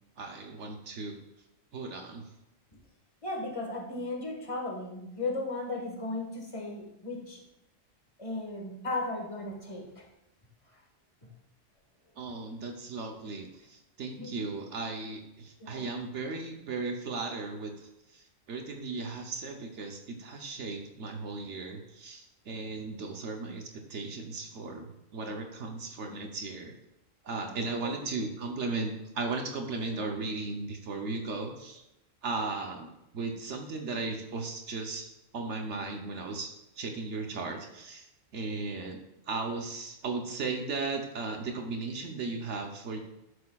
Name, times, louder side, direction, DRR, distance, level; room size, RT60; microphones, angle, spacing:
voice 1, 0.2-1.2 1.7-2.2 12.2-26.7 27.2-31.8 32.2-32.9 33.1-38.1 38.3-39.0 39.3-43.0, right 3 dB, 65° right, 3 dB, 1.1 m, -36 dB
voice 2, 3.2-7.4 8.2-10.0 11.2-11.3 14.2-14.4 15.6-15.8 27.4-27.9 29.9-30.0, left 2 dB, 25° left, -1 dB, 1.5 m, -36 dB
11.0 x 6.5 x 2.3 m, 0.90 s
omnidirectional pair, 1.3 m